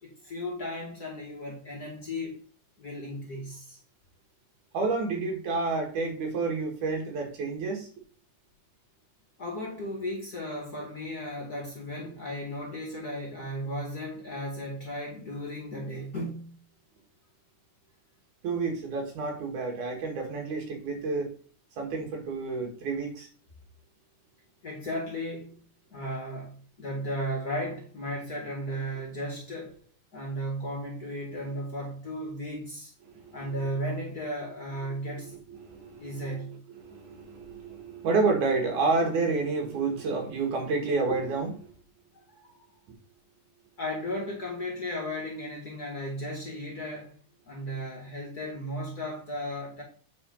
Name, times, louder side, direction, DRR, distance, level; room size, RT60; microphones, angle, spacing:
voice 1, 0.0-2.4 2.8-3.8 9.4-16.6 24.6-25.6 25.9-29.7 30.1-32.9 33.3-35.3 36.0-36.6 42.3-42.6 43.8-47.2 47.5-49.8, equal, 40° left, 1.7 m, -35 dB
voice 2, 4.7-7.9 18.4-21.3 21.8-23.3 33.1-33.4 35.5-36.5 36.8-41.7, right 3 dB, 80° right, 3.2 m, -29 dB
8.5 x 4.1 x 5.2 m
omnidirectional pair, 3.5 m